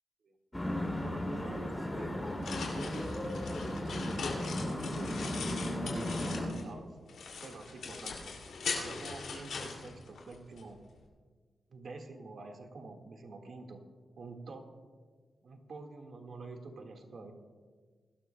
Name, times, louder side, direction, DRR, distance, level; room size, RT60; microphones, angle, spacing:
sound 1, 0.5-6.5, left 1 dB, 15° left, 2.4 m, -36 dB
voice 1, 0.9-3.3 3.8-5.3 5.8-6.9 7.4-8.4 8.7-10.8 11.7-13.8 14.2-14.6 15.4-17.3, right 3 dB, 60° right, 3 dB, 1.7 m, -47 dB
sound 2, 2.1-6.7 7.1-10.6, left 5 dB, 85° left, 2.4 m, -41 dB
22.0 x 12.5 x 2.2 m, 1.5 s
cardioid pair, 80°, 0 cm